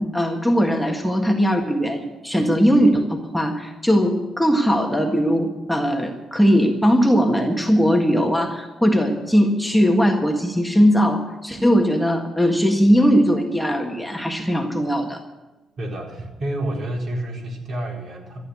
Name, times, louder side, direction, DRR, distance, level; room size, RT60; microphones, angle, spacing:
voice 1, 0.0-15.2, equal, ahead, 1 dB, 1.7 m, -19 dB
voice 2, 15.8-18.4, right 1 dB, 55° right, -1 dB, 4.4 m, -29 dB
14.0 x 9.2 x 9.4 m, 1.1 s
cardioid pair, 90°, 0 cm